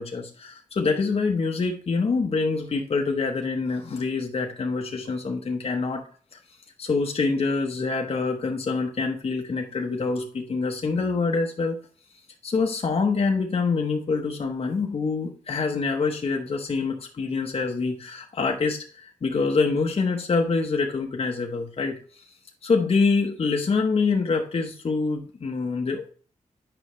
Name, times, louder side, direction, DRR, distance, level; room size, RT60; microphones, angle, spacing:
voice 1, 0.0-6.0 6.3-6.4 6.8-11.8 12.4-22.2 22.6-26.1, left 4 dB, 50° left, 2 dB, 0.9 m, -25 dB
8.9 x 5.4 x 3.1 m, 0.43 s
wide cardioid pair, 110°, 13 cm